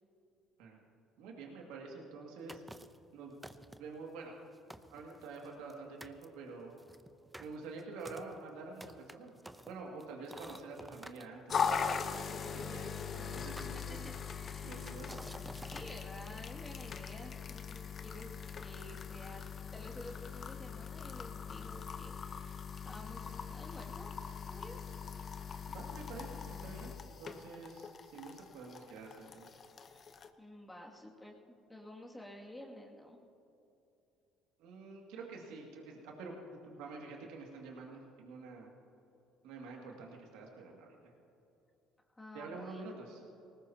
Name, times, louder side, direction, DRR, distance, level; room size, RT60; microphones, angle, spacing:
voice 1, 1.2-2.6 3.1-3.3 3.8-4.3 4.9-6.7 7.4-9.3 9.6-11.8 12.5-14.1 14.6-15.2 25.7-29.5 34.6-38.7 39.4-41.0 42.3-43.2, right 3 dB, 85° right, -1 dB, 2.2 m, -47 dB
sound 1, 2.5-3.0 3.4-4.0 4.4-4.5 4.7-5.7 6.0-6.3 6.8-11.3 12.1-13.0 13.6-14.3 14.8-15.9, right 1 dB, 5° right, 0.7 m, -51 dB
sound 2, 11.5-30.3, left 6 dB, 45° left, 0.9 m, -41 dB
voice 2, 13.9-14.9 15.6-19.5 19.7-24.1 24.5-24.8 29.9-33.2 42.1-42.9, left 1 dB, 15° left, -1 dB, 2.4 m, -51 dB
19.5 x 19.0 x 2.9 m, 2.8 s
supercardioid pair, 85°, 0 cm